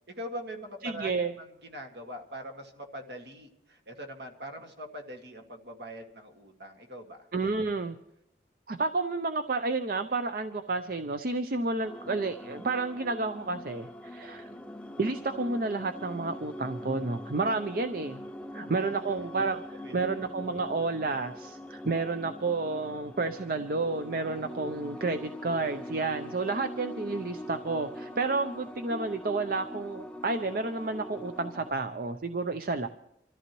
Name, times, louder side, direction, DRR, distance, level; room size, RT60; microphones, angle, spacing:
voice 1, 0.1-7.3 18.5-18.7 19.8-20.1, equal, 70° right, 3 dB, 2.0 m, -42 dB
voice 2, 0.8-1.3 7.3-8.0 8.7-14.5 15.0-18.2 18.5-19.6 19.9-32.9, right 3 dB, 50° right, 8 dB, 0.6 m, -31 dB
sound 1, 11.8-31.7, left 1 dB, 5° left, 0.5 m, -43 dB
26.5 x 14.0 x 3.1 m, 0.82 s
head